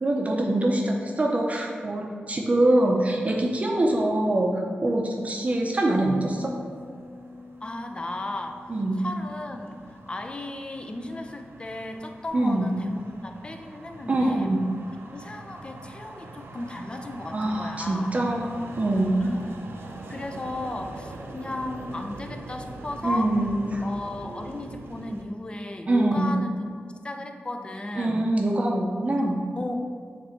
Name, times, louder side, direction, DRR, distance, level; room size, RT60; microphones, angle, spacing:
voice 1, 0.0-6.6 8.7-9.0 12.3-12.7 14.1-14.6 17.3-18.5 18.8-19.2 23.0-23.8 25.9-26.3 28.0-29.4, right 1 dB, 35° right, 0 dB, 0.7 m, -24 dB
sound 1, 5.5-25.2, right 2 dB, 75° right, 0.6 m, -43 dB
Bass guitar, 6.0-12.3, left 3 dB, 75° left, 0.4 m, -45 dB
voice 2, 7.6-14.6 15.1-18.1 19.2-19.5 20.1-23.3 23.8-26.5 27.0-28.3 29.2-29.7, left 2 dB, 25° left, 5 dB, 0.5 m, -35 dB
6.5 x 3.4 x 4.4 m, 2.1 s
wide cardioid pair, 95°, 4 cm